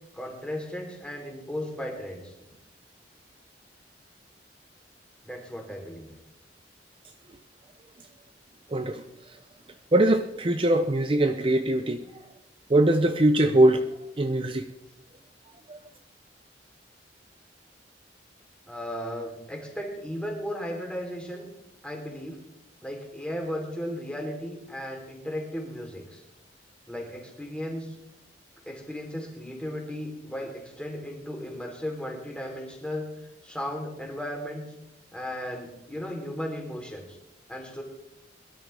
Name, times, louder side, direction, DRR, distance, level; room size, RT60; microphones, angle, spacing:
voice 1, 0.1-2.5 5.2-6.1 18.7-21.5 21.8-22.4 22.8-26.2 26.9-27.9 28.6-33.1 33.4-34.6 35.1-37.2 37.5-37.8, equal, 5° left, 3.3 m, -35 dB
voice 2, 8.7-9.4 9.9-12.1 12.7-13.9 14.2-14.7 15.7-15.8, right 1 dB, 30° right, 0.6 m, -22 dB
22.0 x 12.5 x 3.4 m
head